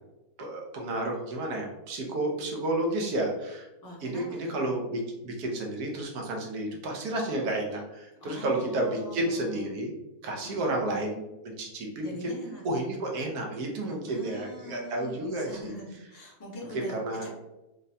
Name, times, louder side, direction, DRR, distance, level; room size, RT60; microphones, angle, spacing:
voice 1, 0.4-3.7 4.0-9.9 10.2-12.3 12.6-15.7 16.7-17.3, right 1 dB, 85° right, 0 dB, 1.2 m, -31 dB
voice 2, 3.8-4.7 8.2-9.7 10.4-10.8 12.0-12.7 14.1-17.3, equal, 20° left, -5 dB, 0.5 m, -43 dB
3.7 x 2.1 x 2.6 m, 0.98 s
omnidirectional pair, 1.6 m